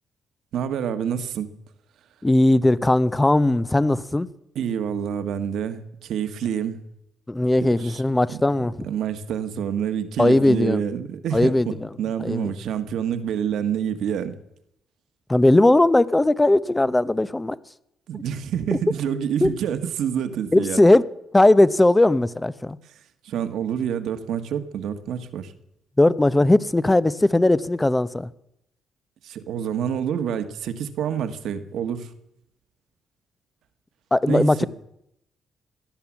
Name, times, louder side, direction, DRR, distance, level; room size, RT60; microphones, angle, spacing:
voice 1, 0.5-1.5 4.5-6.8 7.6-8.0 8.3-14.4 18.1-20.8 23.2-25.5 29.2-32.1 34.3-34.7, right 8 dB, 75° right, 1.4 m, -27 dB
voice 2, 2.2-4.3 7.3-8.7 10.2-10.8 11.3-11.7 12.2-12.5 15.3-17.6 19.4-19.5 20.5-21.0 21.3-22.8 26.0-28.3 34.1-34.7, left 1 dB, 15° left, 0.7 m, -18 dB
17.5 x 11.5 x 7.3 m
cardioid pair, 90°, 0 cm